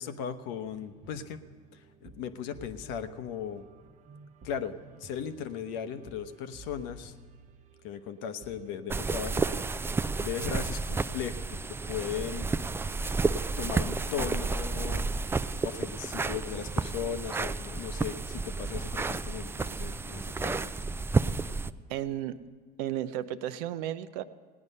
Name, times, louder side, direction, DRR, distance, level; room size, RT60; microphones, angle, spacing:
voice 1, 0.0-1.4 1.7-3.6 4.4-7.1 7.8-9.6 10.2-12.5 13.6-15.1 15.6-20.7, left 8 dB, 65° left, 10 dB, 0.9 m, -37 dB
sound 1, 0.6-20.4, right 2 dB, 35° right, 0.9 m, -53 dB
sound 2, 8.9-21.7, right 3 dB, 10° right, 0.4 m, -31 dB
voice 2, 21.9-22.4 22.8-24.2, right 12 dB, 70° right, 12 dB, 0.6 m, -33 dB
17.5 x 9.7 x 5.4 m, 1.5 s
hypercardioid pair, 75°, 21 cm